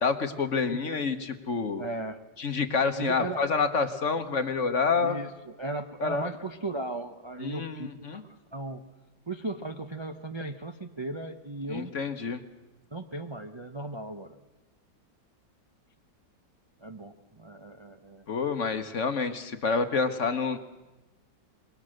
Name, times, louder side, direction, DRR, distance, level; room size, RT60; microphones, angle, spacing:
voice 1, 0.0-1.8 2.4-5.2 6.0-6.3 7.4-8.2 11.7-12.4 18.3-20.6, left 5 dB, 45° left, 9 dB, 1.4 m, -28 dB
voice 2, 1.8-2.2 3.0-3.4 5.0-8.2 8.5-8.8 9.3-11.9 12.9-14.4 16.8-18.3, right 2 dB, 35° right, 5 dB, 0.4 m, -36 dB
26.0 x 22.0 x 6.5 m, 1.1 s
omnidirectional pair, 2.0 m